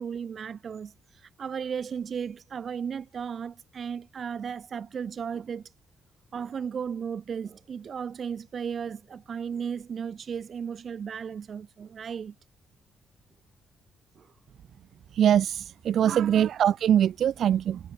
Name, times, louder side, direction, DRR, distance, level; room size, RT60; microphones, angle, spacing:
voice 1, 0.0-5.7 6.3-12.3 14.2-14.3 16.1-16.5, right 7 dB, 45° right, 6.1 m, -35 dB
voice 2, 15.2-17.8, right 10 dB, 65° right, 0.6 m, -22 dB
cardioid pair, 120°, 0 cm